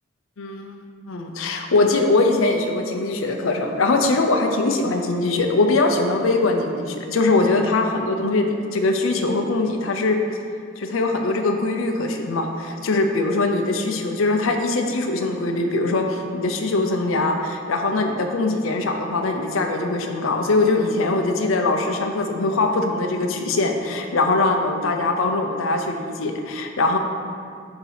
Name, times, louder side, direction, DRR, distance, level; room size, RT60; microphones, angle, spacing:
voice 1, 0.4-10.2 10.8-27.0, left 2 dB, 85° left, 4 dB, 0.6 m, -22 dB
6.9 x 2.9 x 5.7 m, 2.3 s
head